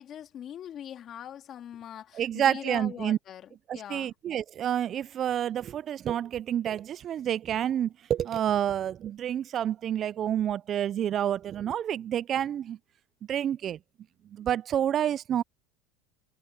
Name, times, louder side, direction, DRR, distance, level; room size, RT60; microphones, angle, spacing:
voice 1, 0.0-4.1, left 10 dB, 40° left, 2.1 m, -42 dB
voice 2, 2.1-3.2 3.7-12.8 13.3-13.8 14.3-15.4, right 10 dB, 40° right, 0.3 m, -29 dB
supercardioid pair, 105°, 0 cm